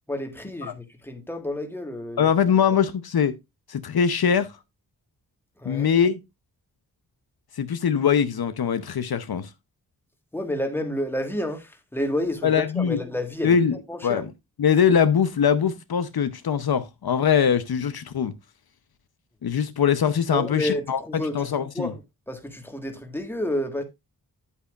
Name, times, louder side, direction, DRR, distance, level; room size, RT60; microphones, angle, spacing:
voice 1, 0.1-2.3 5.6-5.9 10.3-13.6 13.9-14.2 20.3-21.5 21.7-22.0 22.3-23.8, left 1 dB, 5° left, 1.6 m, -30 dB
voice 2, 2.2-3.4 3.7-4.6 5.6-6.2 7.5-9.5 12.4-13.0 13.4-13.8 14.0-14.3 14.6-18.3 19.4-21.9, left 7 dB, 65° left, 0.8 m, -22 dB
11.0 x 8.3 x 2.4 m
wide cardioid pair, 155°, 40 cm